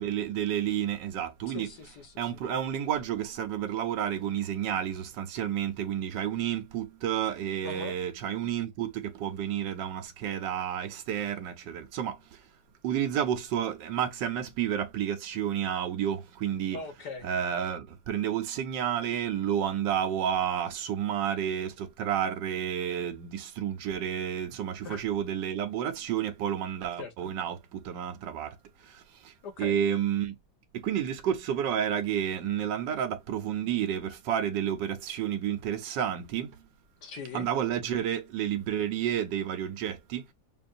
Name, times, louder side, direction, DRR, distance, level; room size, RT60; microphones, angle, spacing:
voice 1, 0.0-1.7 2.2-12.4 12.8-16.8 17.2-28.6 28.8-30.3 30.7-36.6 37.3-40.3, right 9 dB, 75° right, 1.3 m, -30 dB
voice 2, 1.5-2.3 7.6-8.0 16.7-17.3 24.8-25.0 27.0-27.3 29.4-29.8 37.0-37.5, left 4 dB, 65° left, 1.6 m, -41 dB
5.4 x 2.6 x 2.5 m
omnidirectional pair, 2.0 m